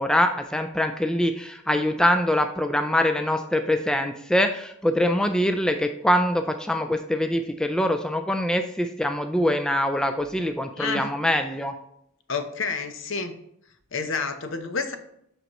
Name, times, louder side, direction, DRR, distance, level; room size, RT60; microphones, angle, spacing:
voice 1, 0.0-11.7, left 1 dB, 5° left, 6 dB, 0.3 m, -24 dB
voice 2, 10.8-11.1 12.3-13.4 13.9-15.0, left 4 dB, 65° left, 8 dB, 0.8 m, -29 dB
8.0 x 6.1 x 3.0 m, 0.76 s
head